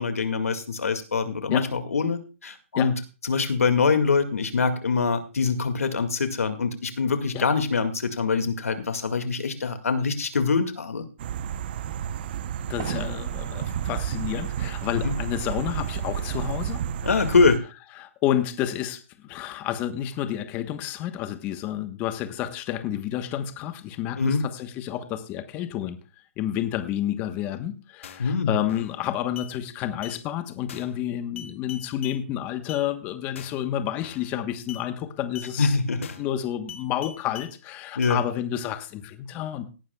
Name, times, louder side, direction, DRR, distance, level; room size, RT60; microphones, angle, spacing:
voice 1, 0.0-3.0 3.2-11.1 15.0-15.1 17.0-17.6 24.2-24.4 28.2-28.5 35.6-36.1 38.0-38.2, left 4 dB, 90° left, 8 dB, 2.1 m, -24 dB
sound 1, 11.2-17.6, right 9 dB, 40° right, 0.8 m, -31 dB
voice 2, 12.7-17.1 18.0-35.8 36.2-39.7, left 11 dB, 20° left, 9 dB, 1.1 m, -30 dB
sound 2, 28.0-28.3 28.7-29.0 29.4-29.5 30.0-30.2 30.7-31.0 31.4-32.2 32.7-32.8 33.3-33.7 34.0-34.3 34.7-34.8 35.3-35.5 36.0-36.3 36.7-37.5 38.0-38.2, left 8 dB, 65° left, 1.8 m, -42 dB
17.5 x 11.5 x 2.3 m, 0.34 s
hypercardioid pair, 155°, 8 cm